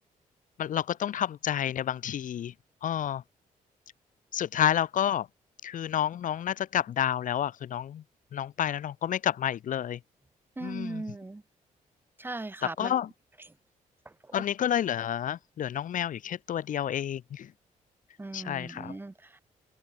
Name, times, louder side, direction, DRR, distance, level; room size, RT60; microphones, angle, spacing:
voice 1, 0.6-2.5 2.8-3.2 4.3-5.3 5.6-8.0 8.3-10.0 10.6-11.0 12.6-13.1 14.3-17.5 18.3-19.0, left 10 dB, 65° left, 5.1 m, -30 dB
voice 2, 10.6-11.4 12.2-13.0 18.2-19.4, right 2 dB, 15° right, 7.7 m, -38 dB
cardioid pair, 125°, 14 cm